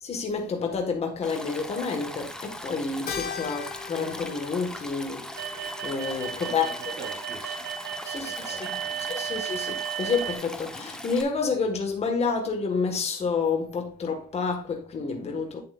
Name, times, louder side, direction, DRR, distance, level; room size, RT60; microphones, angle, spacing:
voice 1, 0.0-6.7 8.0-8.6 9.1-15.6, left 5 dB, 40° left, 1.7 m, -29 dB
Stream, 1.2-11.2, left 1 dB, 5° left, 1.0 m, -40 dB
Keyboard (musical), 3.1-7.7, left 7 dB, 60° left, 1.5 m, -40 dB
sound 1, 5.4-10.4, right 9 dB, 85° right, 1.2 m, -34 dB
voice 2, 6.3-7.7 8.2-9.4, right 3 dB, 45° right, 3.8 m, -46 dB
9.0 x 7.5 x 2.5 m
cardioid pair, 110°, 17 cm